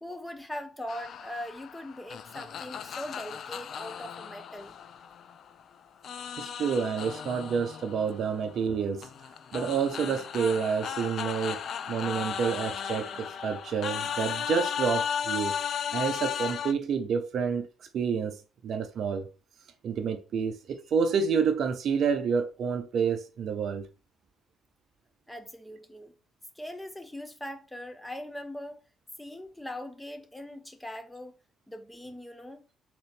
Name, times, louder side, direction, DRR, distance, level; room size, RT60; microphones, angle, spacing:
voice 1, 0.0-4.8 25.3-26.1 26.5-28.8 29.2-31.4 31.7-32.6, left 1 dB, 10° left, 0.9 m, -41 dB
sound 1, 0.9-5.6 6.0-16.7, left 8 dB, 55° left, 0.3 m, -35 dB
voice 2, 6.4-9.1 9.5-11.6 11.9-15.5 15.9-17.7 17.9-18.4 18.6-19.3 19.8-23.9, right 6 dB, 55° right, 0.6 m, -29 dB
4.0 x 3.0 x 3.2 m
figure-of-eight pair, 45°, 0 cm